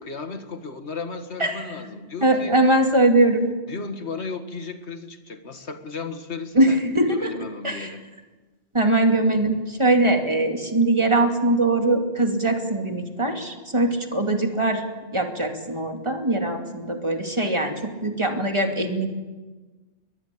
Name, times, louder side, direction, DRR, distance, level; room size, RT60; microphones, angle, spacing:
voice 1, 0.0-2.5 3.7-6.8 7.1-8.0, left 4 dB, 85° left, 8 dB, 2.1 m, -35 dB
voice 2, 1.4-1.8 2.2-3.6 6.5-7.3 7.6-7.9 8.7-14.8 15.1-19.1, right 2 dB, 25° right, 3 dB, 2.7 m, -21 dB
22.0 x 21.0 x 8.6 m, 1.3 s
omnidirectional pair, 1.1 m